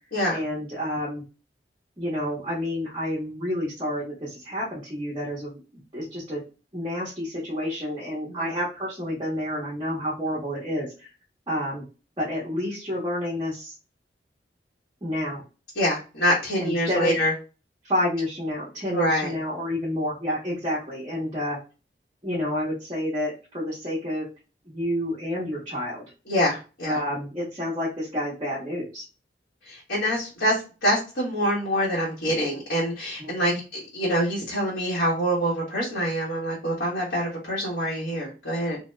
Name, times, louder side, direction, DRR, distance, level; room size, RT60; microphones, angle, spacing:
voice 1, 0.3-1.2 2.0-5.6 5.9-6.4 6.7-11.1 11.5-11.8 12.2-13.7 15.0-15.4 16.6-17.1 17.8-21.6 22.2-24.3 24.7-26.0 26.8-29.0 33.2-33.6, left 1 dB, 25° right, -7 dB, 1.0 m, -29 dB
voice 2, 15.8-17.3 18.9-19.3 26.3-27.0 29.7-38.8, equal, 75° left, -6 dB, 1.1 m, -25 dB
2.8 x 2.1 x 3.2 m, 0.32 s
head